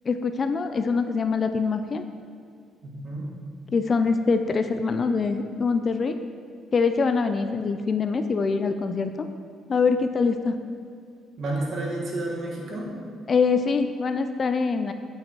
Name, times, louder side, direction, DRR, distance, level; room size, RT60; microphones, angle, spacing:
voice 1, 0.1-2.0 3.7-6.2 6.7-9.3 9.7-10.6 13.3-14.9, left 4 dB, 40° left, 8 dB, 0.4 m, -24 dB
voice 2, 2.8-3.3 11.4-13.0, right 2 dB, 60° right, -3 dB, 1.5 m, -30 dB
8.8 x 5.3 x 3.0 m, 2.3 s
cardioid pair, 110°, 0 cm